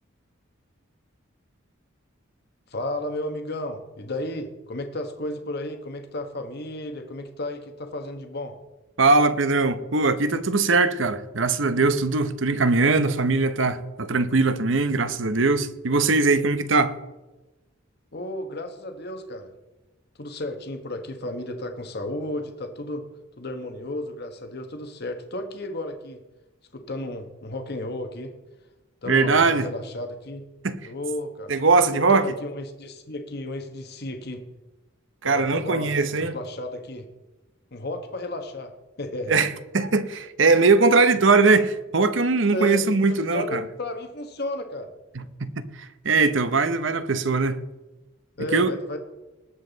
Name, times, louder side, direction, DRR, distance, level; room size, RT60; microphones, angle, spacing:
voice 1, 2.7-8.6 18.1-19.5 20.2-23.0 23.4-26.2 26.7-28.3 29.0-30.4 30.8-31.5 31.9-34.4 35.2-37.1 37.7-39.4 42.5-44.9 48.4-49.0, left 1 dB, 55° left, 1.2 m, -33 dB
voice 2, 9.0-16.9 29.1-29.7 30.6-30.8 31.5-32.3 35.2-36.3 39.3-43.6 45.1-45.6 46.0-47.6 48.5-48.7, right 3 dB, 65° right, 0.9 m, -21 dB
19.5 x 7.5 x 4.0 m
head